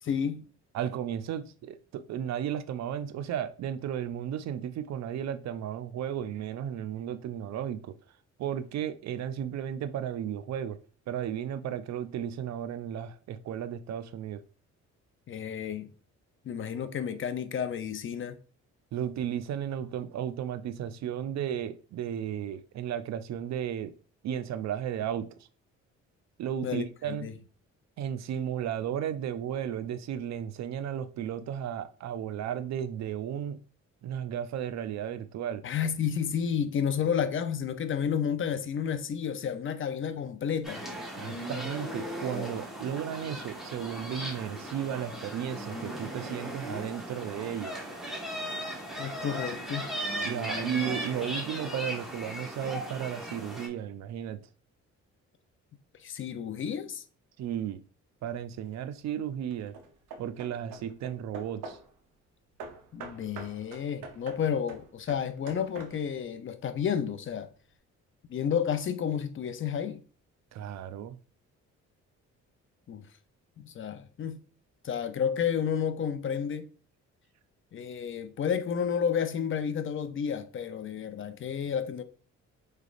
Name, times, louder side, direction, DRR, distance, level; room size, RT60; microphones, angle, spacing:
voice 1, 0.0-0.5 15.3-15.9 16.4-18.4 26.6-27.3 35.6-40.8 49.0-49.9 56.0-57.0 62.9-67.5 68.3-70.0 72.9-73.1 73.6-74.4 74.8-76.7 77.7-82.0, left 7 dB, 40° left, 0.5 m, -31 dB
voice 2, 0.7-7.9 8.4-10.8 11.1-14.4 18.9-23.9 24.2-25.5 26.4-27.3 28.0-33.6 34.0-35.6 41.2-47.7 50.2-54.4 57.4-57.8 58.2-59.7 60.2-61.8 70.5-71.2, right 9 dB, 65° right, 0.4 m, -34 dB
sound 1, 40.6-53.7, equal, ahead, 1.3 m, -37 dB
Hammer / Wood, 58.4-58.9 59.5-62.0 62.6-66.3, right 4 dB, 90° right, 0.8 m, -46 dB
4.8 x 3.2 x 2.4 m
cardioid pair, 90°, 30 cm